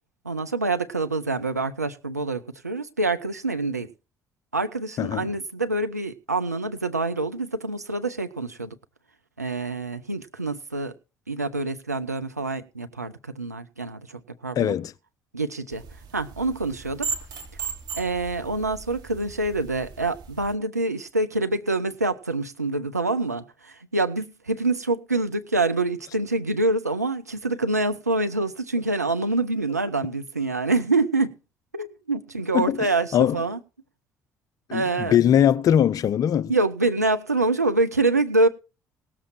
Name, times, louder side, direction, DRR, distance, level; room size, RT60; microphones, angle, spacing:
voice 1, 0.2-3.9 4.5-8.8 9.4-10.9 11.3-14.7 15.3-15.8 16.1-17.1 18.0-31.3 31.7-33.6 34.7-35.2 36.5-38.5, right 2 dB, 85° right, 0.7 m, -26 dB
voice 2, 14.6-14.9 32.5-32.9 33.1-33.4 34.7-34.8 35.1-36.5, left 10 dB, 45° left, 0.6 m, -20 dB
sound 1, 15.7-20.5, right 6 dB, 50° right, 2.6 m, -37 dB
18.5 x 7.4 x 4.6 m
figure-of-eight pair, 50°, 8 cm